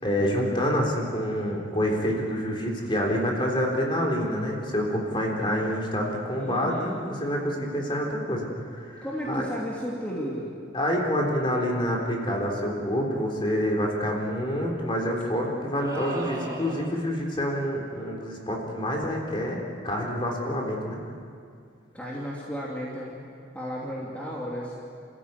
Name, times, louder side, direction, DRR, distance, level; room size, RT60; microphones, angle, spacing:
voice 1, 0.0-9.5 10.7-21.0, equal, 25° left, -1 dB, 3.6 m, -27 dB
voice 2, 6.4-7.0 9.0-10.5 21.9-24.8, equal, 10° left, -5 dB, 2.7 m, -33 dB
sound 1, 15.8-17.2, right 1 dB, 20° right, 2.5 m, -37 dB
29.0 x 14.5 x 9.6 m, 2.3 s
head